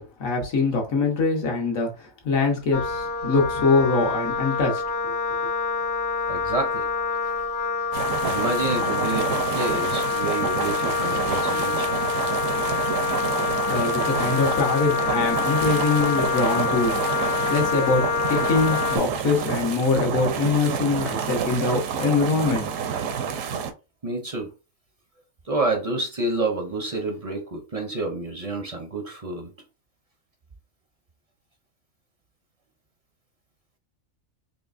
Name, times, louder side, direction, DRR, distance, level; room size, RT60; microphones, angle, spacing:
voice 1, 0.0-5.1 13.7-17.0 17.5-18.0 18.3-22.7, left 4 dB, 75° left, 1.5 m, -23 dB
Wind instrument woodwind instrument, 2.7-19.0, left 5 dB, 50° left, 0.6 m, -26 dB
voice 2, 6.3-7.3 8.2-11.9 24.0-24.5 25.4-29.5, right 2 dB, 40° right, 0.5 m, -29 dB
sound 1, 7.9-23.7, right 7 dB, 75° right, 1.0 m, -29 dB
4.5 x 3.0 x 2.5 m
omnidirectional pair, 1.4 m